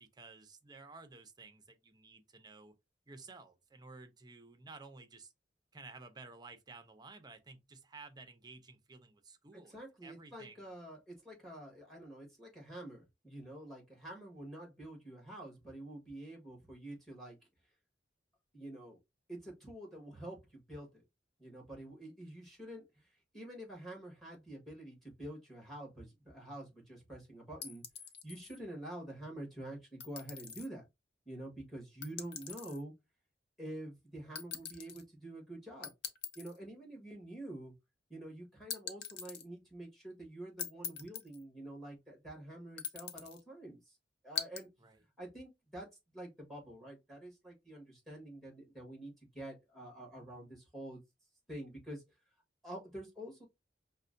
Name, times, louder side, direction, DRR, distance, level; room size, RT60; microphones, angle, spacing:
voice 1, 0.0-2.7 3.1-5.3 5.7-10.7 44.8-45.0, right 3 dB, 25° right, 0.5 m, -54 dB
voice 2, 9.5-17.4 18.5-19.0 19.3-21.0 21.4-23.1 23.3-27.8 28.2-30.8 31.2-32.9 33.6-35.9 36.3-37.7 38.1-44.0 44.2-44.7 45.2-45.9 46.1-51.0 51.5-52.0 52.6-53.5, right 1 dB, ahead, 1.4 m, -47 dB
sound 1, 27.6-28.6 30.0-30.7 32.0-32.8 34.4-35.0 35.8-36.6 38.7-39.5 40.6-41.4 42.8-43.4 44.4-44.6, left 7 dB, 65° left, 0.5 m, -42 dB
5.3 x 2.2 x 2.5 m
head